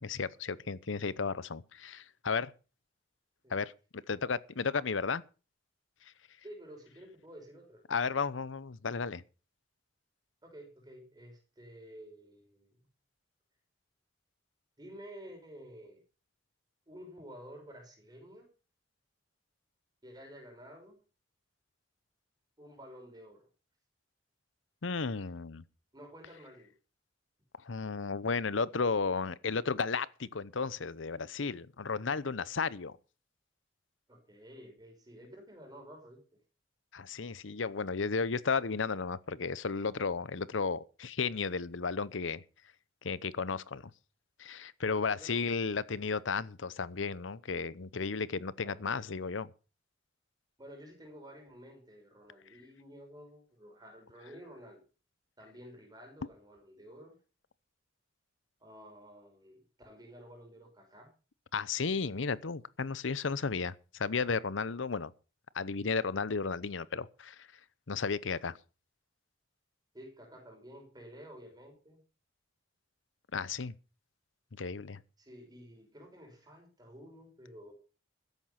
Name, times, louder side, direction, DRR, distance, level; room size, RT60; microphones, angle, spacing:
voice 1, 0.0-2.5 3.5-5.2 7.9-9.2 24.8-25.6 27.6-32.9 36.9-42.4 43.0-43.8 44.4-49.5 61.5-65.1 65.5-67.5 67.9-68.6 73.3-73.7 74.6-75.0, left 5 dB, 80° left, 0.8 m, -34 dB
voice 2, 6.4-7.8 10.4-12.8 14.8-16.0 16.9-18.5 20.0-21.0 22.6-23.5 25.9-26.7 34.1-36.4 45.2-45.5 48.6-49.1 50.6-54.8 55.4-57.2 58.6-61.1 69.9-72.0 75.2-77.7, equal, 20° right, 5.8 m, -51 dB
14.0 x 10.5 x 5.8 m
head